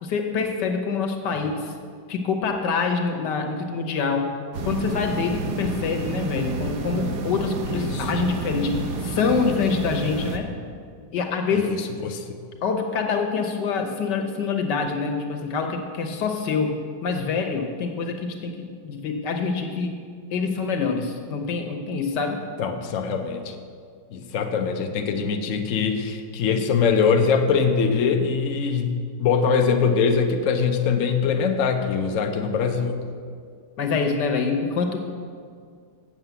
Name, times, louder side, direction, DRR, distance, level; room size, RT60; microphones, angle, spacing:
voice 1, 0.0-1.7 2.1-4.3 4.6-10.5 11.1-11.8 12.6-20.0 20.3-22.4 33.8-35.0, left 5 dB, 80° left, 4 dB, 1.6 m, -26 dB
sound 1, 4.5-10.4, right 3 dB, 75° right, 1.4 m, -29 dB
voice 2, 7.7-8.1 11.5-11.7 12.0-12.3 22.6-23.5 24.1-28.9 29.2-33.0, left 6 dB, 60° left, 4 dB, 1.0 m, -22 dB
7.5 x 7.4 x 8.0 m, 2.1 s
omnidirectional pair, 1.8 m